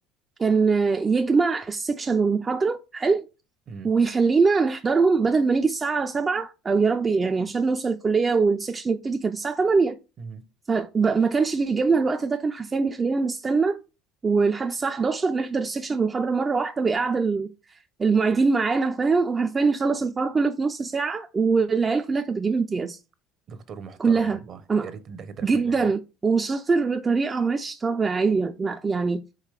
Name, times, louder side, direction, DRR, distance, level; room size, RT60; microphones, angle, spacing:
voice 1, 0.4-3.2 3.8-10.0 10.7-13.8 14.2-23.0 24.0-24.4 24.7-24.9 25.4-29.2, right 4 dB, 25° right, 0.3 m, -23 dB
voice 2, 3.7-4.0 10.2-10.4 23.5-25.9, right 6 dB, 45° right, 0.7 m, -40 dB
4.8 x 2.9 x 3.3 m
supercardioid pair, 95°, 0 cm